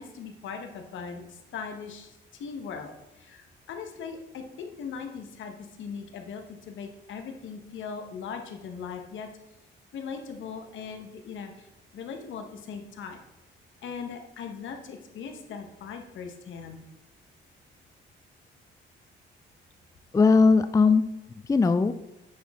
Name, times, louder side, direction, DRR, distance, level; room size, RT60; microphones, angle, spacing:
voice 1, 0.0-9.3 9.9-11.7 11.9-13.2 13.8-16.8, left 6 dB, 75° left, 5 dB, 1.4 m, -39 dB
voice 2, 20.1-21.9, left 4 dB, 15° left, 12 dB, 0.4 m, -20 dB
9.3 x 6.3 x 3.8 m, 0.99 s
cardioid pair, 90°, 20 cm